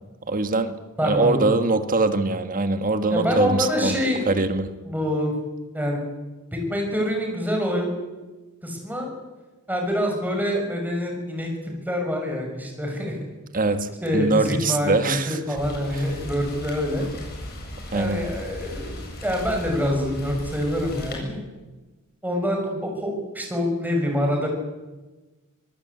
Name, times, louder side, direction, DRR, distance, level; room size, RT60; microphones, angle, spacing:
voice 1, 0.3-0.7 1.0-4.0 4.3-4.7 13.5-15.4 15.9-16.0 17.9-18.2, right 3 dB, 40° right, 9 dB, 1.6 m, -23 dB
voice 2, 1.0-1.4 3.1-4.2 4.8-5.3 5.7-6.0 6.5-7.9 8.6-9.1 9.7-11.5 11.8-13.2 13.5-13.6 14.0-17.1 17.9-19.0 19.2-21.4 22.2-24.5, equal, 10° right, 1 dB, 6.4 m, -26 dB
Rain, 15.5-21.1, left 1 dB, 45° left, 7.8 m, -36 dB
25.0 x 19.0 x 8.5 m, 1.2 s
head